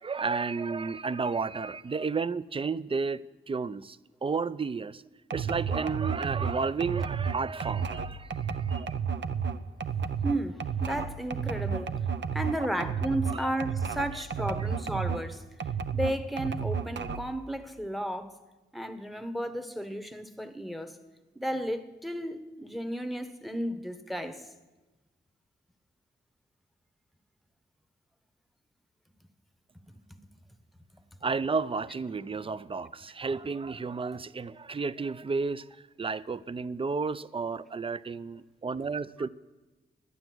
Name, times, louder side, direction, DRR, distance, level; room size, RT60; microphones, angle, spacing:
voice 1, 0.0-5.0 5.3-9.0 12.6-12.7 13.3-13.5 14.1-14.7 31.2-35.7 36.0-39.3, right 4 dB, 25° right, 0.4 m, -32 dB
sound 1, 5.3-15.3 15.6-17.4, right 6 dB, 65° right, 0.6 m, -32 dB
voice 2, 10.2-12.1 12.3-15.4 15.9-18.4 18.7-21.0 21.4-24.5 30.1-30.2 30.9-31.0, right 1 dB, ahead, 0.9 m, -33 dB
11.0 x 9.7 x 7.6 m
cardioid pair, 75°, 20 cm